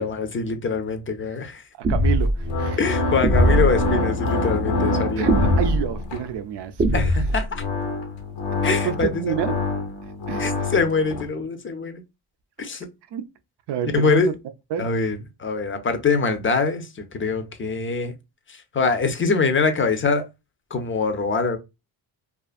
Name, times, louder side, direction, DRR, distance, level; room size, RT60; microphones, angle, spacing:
voice 1, 0.0-1.6 2.8-5.3 6.9-7.6 8.6-9.3 10.4-12.0 12.6-12.9 13.9-14.3 14.8-16.9 17.1-18.1 18.5-20.2 20.7-21.6, left 4 dB, 30° left, 0.5 m, -23 dB
sound 1, 1.8-2.4 3.2-3.8 5.3-5.8 6.8-7.4, equal, 25° right, 0.5 m, -19 dB
voice 2, 1.9-2.8 5.2-7.2 8.8-9.6 10.3-10.7 13.1-13.2 13.7-14.3 14.7-14.9, right 9 dB, 70° right, 0.5 m, -28 dB
sound 2, 2.3-6.4 7.3-11.3, left 2 dB, 80° left, 0.8 m, -26 dB
2.5 x 2.5 x 2.4 m
cardioid pair, 125°, 44 cm